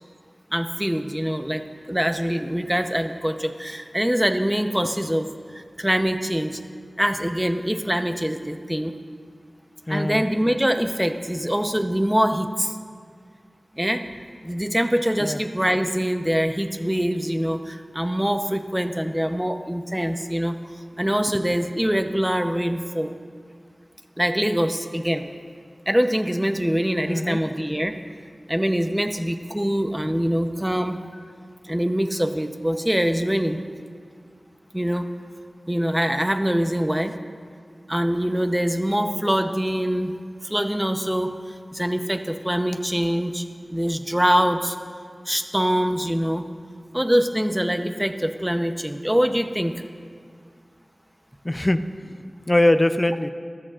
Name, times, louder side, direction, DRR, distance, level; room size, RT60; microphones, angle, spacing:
voice 1, 0.5-5.3 5.5-6.6 7.0-8.9 9.9-12.8 13.8-14.0 14.4-20.6 21.0-23.1 24.2-25.2 25.9-28.0 28.5-31.0 31.7-33.6 34.7-35.1 35.7-37.1 37.9-40.2 40.4-41.3 41.7-43.4 43.7-44.8 45.3-46.5 46.9-49.7, equal, 10° right, 6 dB, 0.8 m, -24 dB
voice 2, 9.9-10.2 15.2-15.4 27.0-27.4 51.4-51.8 52.5-53.3, left 1 dB, 25° left, 10 dB, 0.5 m, -21 dB
22.0 x 13.5 x 2.5 m, 2.1 s
wide cardioid pair, 65°, 0 cm